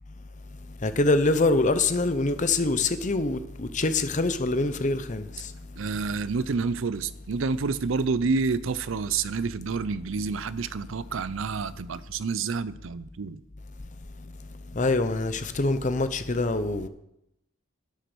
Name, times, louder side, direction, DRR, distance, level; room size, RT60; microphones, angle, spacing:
voice 1, 0.8-5.2 14.7-16.9, left 2 dB, 35° left, 0.8 m, -24 dB
voice 2, 5.8-13.4, right 4 dB, 70° right, 0.5 m, -28 dB
10.5 x 8.2 x 6.1 m
head